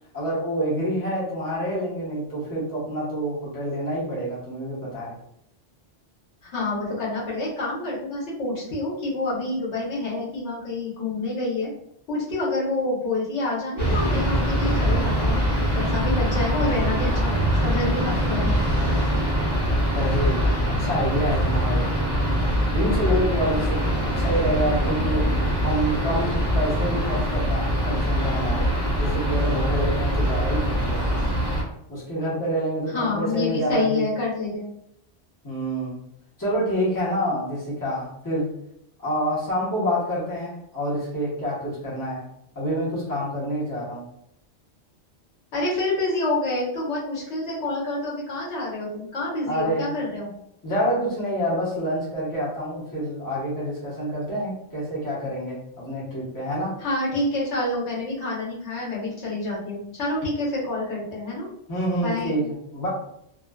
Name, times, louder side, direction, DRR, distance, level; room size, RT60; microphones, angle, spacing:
voice 1, 0.1-5.2 19.9-22.1 22.7-28.7 28.9-31.3 31.9-34.1 35.4-36.0 36.4-38.6 39.0-42.3 42.5-44.1 49.5-49.9 50.6-56.8 61.7-62.9, equal, 20° left, -8 dB, 0.9 m, -27 dB
voice 2, 6.5-11.7 12.1-15.4 15.7-18.5 32.9-34.7 45.5-50.3 56.8-61.5 62.0-62.4, left 2 dB, 80° left, -5 dB, 1.2 m, -27 dB
sound 1, 13.8-31.6, equal, 25° right, 0.7 m, -23 dB
2.5 x 2.3 x 2.2 m, 0.75 s
omnidirectional pair, 1.2 m